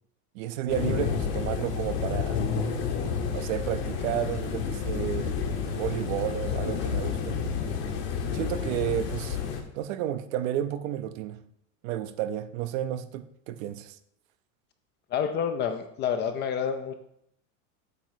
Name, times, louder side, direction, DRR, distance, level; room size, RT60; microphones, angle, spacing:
voice 1, 0.3-2.5 3.3-5.4 5.7-7.4 8.3-9.4 9.7-11.4 11.8-14.0, right 11 dB, 65° right, 0.7 m, -31 dB
sound 1, 0.7-9.6, left 6 dB, 55° left, 1.5 m, -30 dB
voice 2, 15.1-17.0, left 7 dB, 25° left, 0.4 m, -28 dB
8.2 x 3.0 x 6.3 m
supercardioid pair, 145°, 43 cm